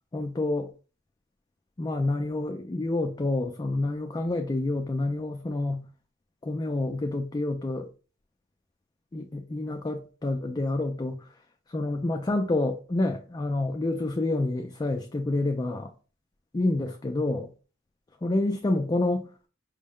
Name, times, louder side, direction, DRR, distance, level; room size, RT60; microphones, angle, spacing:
voice 1, 0.1-0.7 1.8-5.9 6.4-7.9 9.1-11.2 11.7-15.9 16.5-17.5 18.2-19.2, left 2 dB, 20° left, 0.3 m, -28 dB
5.1 x 2.1 x 3.6 m
head